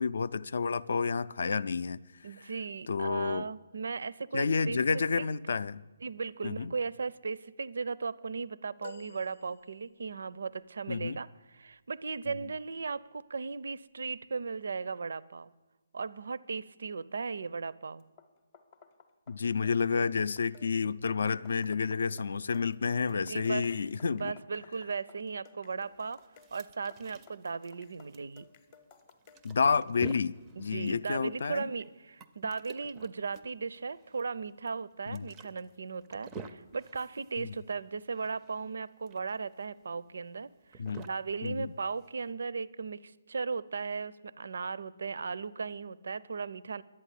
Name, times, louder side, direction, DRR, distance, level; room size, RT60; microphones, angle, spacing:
voice 1, 0.0-2.0 2.9-3.5 4.3-5.8 6.4-6.7 10.9-11.2 19.3-24.3 29.4-31.7 35.1-35.3 37.4-37.5 40.8-41.0 41.4-41.7, left 5 dB, 60° left, 0.4 m, -30 dB
voice 2, 2.2-5.0 6.0-11.3 11.5-15.5 15.9-18.0 23.1-23.7 24.1-26.2 26.5-28.5 30.6-46.8, right 5 dB, 65° right, 0.4 m, -37 dB
sound 1, 8.8-10.2 12.6-12.8 14.1-14.2, left 4 dB, 85° left, 0.7 m, -50 dB
sound 2, 18.0-29.6, left 5 dB, 20° left, 0.7 m, -59 dB
sound 3, 25.8-42.3, right 4 dB, 10° right, 0.4 m, -50 dB
11.5 x 8.6 x 9.9 m
hypercardioid pair, 175°, 0 cm